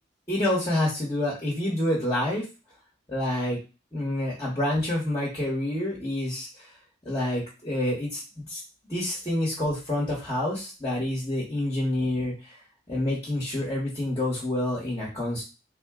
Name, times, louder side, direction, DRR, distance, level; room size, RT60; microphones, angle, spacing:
voice 1, 0.3-2.4 3.1-3.6 3.9-6.7 7.0-8.6 8.9-12.6 12.9-15.4, left 1 dB, 20° left, -5 dB, 1.1 m, -28 dB
3.7 x 2.1 x 3.6 m, 0.29 s
head